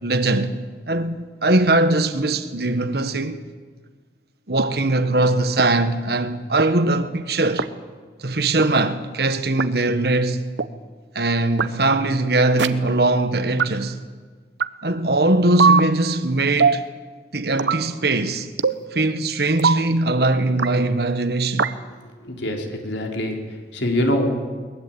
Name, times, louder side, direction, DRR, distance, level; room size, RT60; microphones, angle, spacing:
voice 1, 0.0-0.5 0.9-3.4 4.5-7.7 8.2-10.5 11.1-14.0 14.8-16.9 17.3-18.5 18.9-21.7, right 2 dB, 60° right, 1.5 m, -21 dB
sound 1, 4.6-4.7 5.6-5.7 6.6-6.7 7.6-7.7 8.6-8.7 9.6-9.7 10.6-10.7 11.6-11.7 12.6-12.7 13.6-13.7 14.6-14.7 15.6-15.8 16.6-16.8 17.6-17.8 18.6-18.8 19.6-19.8 20.6-20.7 21.6-21.7, right 5 dB, 75° right, 1.0 m, -19 dB
voice 2, 22.2-23.4 23.7-24.3, left 1 dB, 80° left, 3.9 m, -23 dB
22.0 x 21.0 x 8.9 m
head